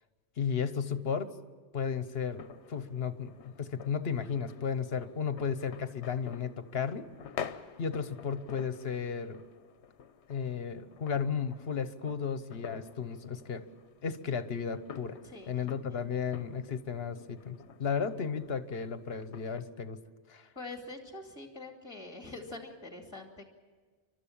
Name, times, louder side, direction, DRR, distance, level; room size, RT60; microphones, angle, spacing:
voice 1, 0.4-1.3 1.7-2.4 2.7-7.1 7.8-9.4 10.3-13.6 14.0-15.2 15.5-20.0 20.3-20.5, left 6 dB, 65° left, 11 dB, 1.2 m, -34 dB
sound 1, 2.2-19.6, left 7 dB, 80° left, 1.1 m, -49 dB
voice 2, 15.2-16.1 20.6-23.5, left 2 dB, 25° left, 3 dB, 2.4 m, -45 dB
29.5 x 12.5 x 8.7 m, 1.4 s
omnidirectional pair, 1.1 m